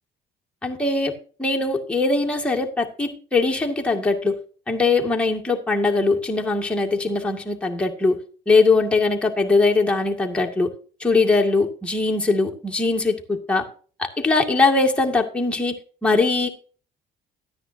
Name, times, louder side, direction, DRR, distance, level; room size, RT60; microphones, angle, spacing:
voice 1, 0.6-4.4 4.7-8.2 8.5-10.7 11.0-13.7 14.0-15.8 16.0-16.5, left 3 dB, 5° left, 2.1 m, -21 dB
13.5 x 9.9 x 2.7 m
cardioid pair, 110°, 17 cm